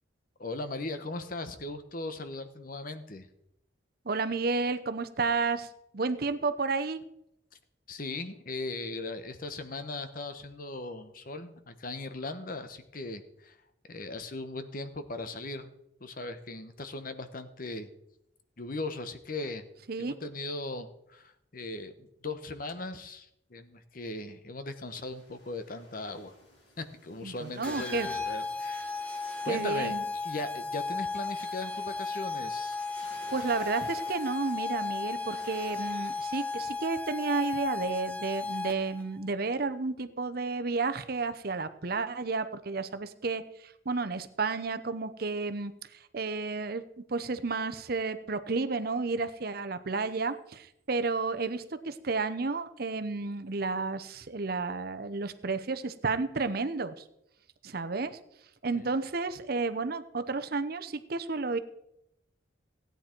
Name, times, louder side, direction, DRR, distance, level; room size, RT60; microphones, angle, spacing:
voice 1, 0.4-3.3 7.9-13.6 13.9-15.7 16.0-17.9 18.6-19.6 20.0-26.3 26.8-28.9 29.4-29.9 30.2-32.8 58.7-58.9, left 2 dB, 50° left, 10 dB, 1.0 m, -38 dB
voice 2, 4.1-7.0 19.9-20.2 27.2-28.1 29.5-30.0 33.3-57.0 57.6-58.2 58.6-61.6, right 3 dB, 55° right, 11 dB, 0.8 m, -32 dB
sound 1, 24.8-36.8, left 1 dB, 70° left, 6.1 m, -55 dB
sound 2, 27.6-39.0, left 4 dB, 5° left, 1.2 m, -35 dB
16.5 x 9.2 x 4.5 m, 0.80 s
head